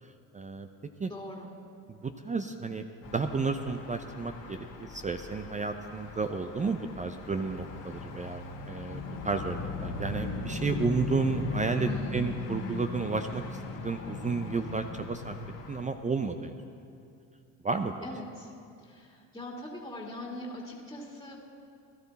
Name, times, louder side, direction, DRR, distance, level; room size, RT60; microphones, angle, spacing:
voice 1, 0.3-0.7 1.0-1.1 1.9-2.8 3.1-15.4 15.7-16.5 17.6-18.1, right 4 dB, 20° right, 7 dB, 0.6 m, -32 dB
voice 2, 1.0-1.5 11.7-12.2 18.0-18.5 18.8-21.4, left 1 dB, 10° left, -1 dB, 2.1 m, -41 dB
sound 1, 3.0-15.8, left 3 dB, 50° left, 1.7 m, -38 dB
17.0 x 12.0 x 4.1 m, 2.4 s
supercardioid pair, 75°, 40 cm